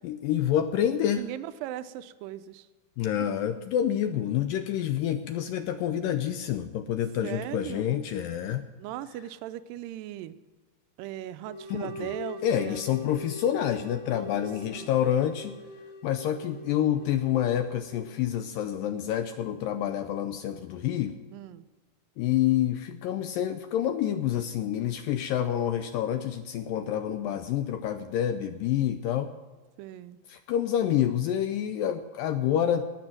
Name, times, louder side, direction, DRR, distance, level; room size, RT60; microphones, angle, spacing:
voice 1, 0.0-1.2 3.0-8.7 11.7-11.9 12.4-15.6 16.0-21.2 22.2-29.3 30.3-32.9, left 10 dB, 80° left, 9 dB, 2.0 m, -28 dB
voice 2, 1.1-2.7 3.2-3.3 7.2-8.0 8.8-10.4 11.0-12.8 14.1-14.4 14.7-14.9 21.3-21.7 29.8-30.2, right 13 dB, 80° right, 13 dB, 2.1 m, -38 dB
sound 1, 11.5-18.2, left 3 dB, 40° left, 1.2 m, -43 dB
18.0 x 6.9 x 7.3 m, 1.4 s
omnidirectional pair, 4.5 m